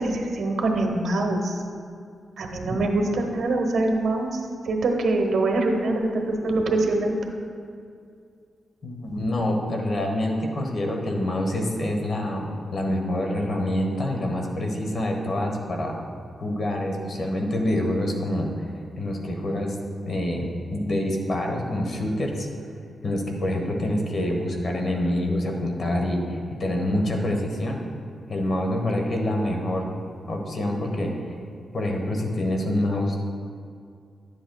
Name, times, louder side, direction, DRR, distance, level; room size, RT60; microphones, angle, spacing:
voice 1, 0.0-1.6 2.4-4.4 4.6-7.2 9.1-9.2, right 2 dB, 70° right, 2 dB, 1.0 m, -24 dB
voice 2, 8.8-16.0 16.4-18.6 19.0-19.7 20.0-22.5 23.0-27.8 28.3-29.9 30.3-31.4 31.7-33.2, left 1 dB, 50° left, 2 dB, 1.1 m, -26 dB
11.0 x 7.8 x 2.3 m, 2.3 s
cardioid pair, 100°, 0 cm